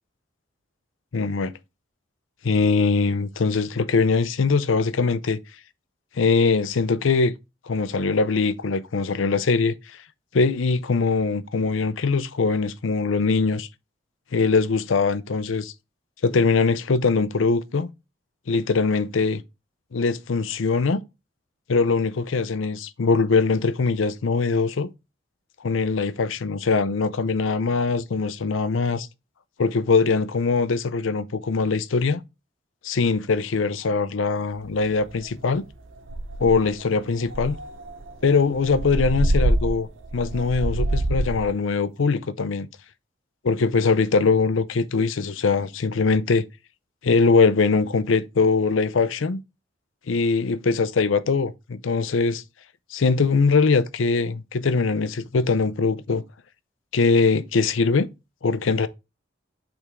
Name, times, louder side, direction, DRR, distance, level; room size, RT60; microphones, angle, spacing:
voice 1, 1.1-1.5 2.4-5.4 6.2-7.3 7.7-10.0 10.3-13.7 14.3-15.7 16.2-17.9 18.5-19.4 19.9-21.0 21.7-24.9 25.6-29.1 29.6-32.2 32.8-35.6 36.4-37.6 38.2-42.7 43.4-46.4 47.0-49.4 50.1-52.4 52.9-56.2 56.9-58.1 58.4-58.9, left 4 dB, 90° left, 0.6 m, -22 dB
sound 1, 34.6-34.7 35.1-35.4 35.7-35.8 36.1-36.8 37.3-41.5, right 1 dB, 80° right, 0.7 m, -25 dB
8.2 x 3.6 x 3.5 m
head